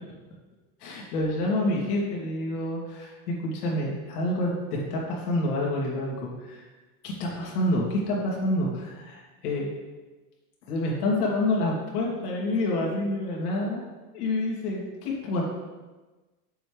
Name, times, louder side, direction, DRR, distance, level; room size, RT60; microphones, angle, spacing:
voice 1, 0.8-6.6 7.0-9.7 10.7-13.8 14.1-15.4, left 1 dB, 80° left, -3 dB, 2.8 m, -28 dB
7.8 x 7.7 x 3.4 m, 1.2 s
supercardioid pair, 175°, 45 cm